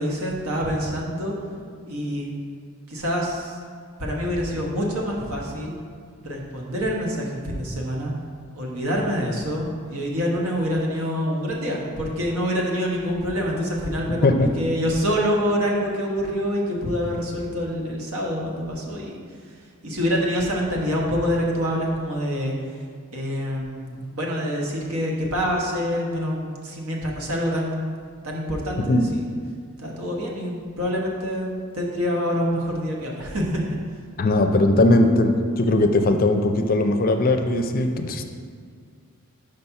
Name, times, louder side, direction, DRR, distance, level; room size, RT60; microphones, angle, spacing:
voice 1, 0.0-1.4 1.8-2.3 2.9-3.6 4.0-5.7 6.2-8.1 8.5-19.2 19.5-19.6 19.8-22.5 23.1-28.0 28.2-29.0 29.8-33.6, equal, 85° right, -2 dB, 1.2 m, -26 dB
voice 2, 34.2-38.2, left 2 dB, 40° left, 6 dB, 0.4 m, -19 dB
5.2 x 4.2 x 5.7 m, 2.1 s
head